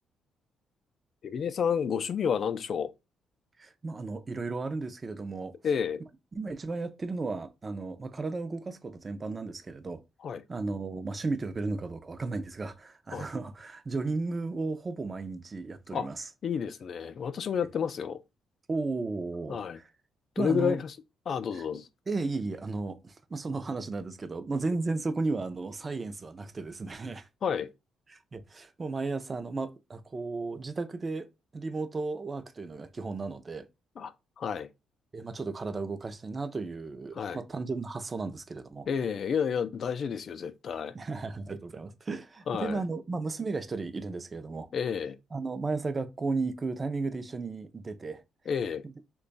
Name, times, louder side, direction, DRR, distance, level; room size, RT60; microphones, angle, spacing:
voice 1, 1.2-2.9 5.6-6.0 10.2-10.4 13.1-13.3 15.9-16.1 16.4-18.2 19.5-19.8 20.4-20.9 21.3-21.9 27.4-27.7 34.0-34.7 37.1-37.4 38.9-40.9 42.5-42.8 44.7-45.2 48.5-48.8, left 7 dB, 55° left, 0.4 m, -30 dB
voice 2, 3.6-5.5 6.3-10.0 10.5-16.3 18.7-19.9 20.4-20.8 21.5-21.7 22.1-27.3 28.1-33.7 35.1-38.9 40.9-44.7 45.3-48.2, right 3 dB, 30° right, 0.5 m, -34 dB
3.0 x 2.3 x 3.9 m
cardioid pair, 90°, 0 cm